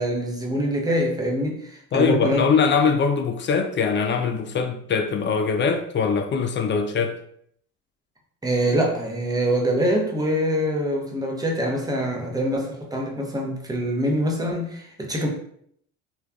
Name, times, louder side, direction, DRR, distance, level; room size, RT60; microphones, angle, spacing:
voice 1, 0.0-2.4 8.4-15.3, equal, 10° right, 0 dB, 0.8 m, -24 dB
voice 2, 1.9-7.2, left 5 dB, 30° left, 6 dB, 0.4 m, -22 dB
3.1 x 2.4 x 2.2 m, 0.67 s
hypercardioid pair, 65°, 36 cm